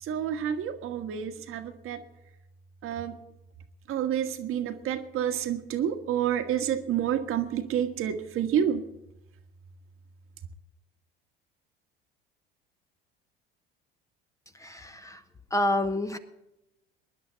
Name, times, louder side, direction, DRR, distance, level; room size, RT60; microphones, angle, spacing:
voice 1, 0.0-2.0 2.8-3.1 3.9-8.8, right 9 dB, 45° right, 7 dB, 1.5 m, -29 dB
voice 2, 14.5-15.2 15.5-16.2, left 1 dB, 10° left, 8 dB, 1.1 m, -28 dB
23.5 x 10.5 x 4.0 m, 0.91 s
hypercardioid pair, 65°, 29 cm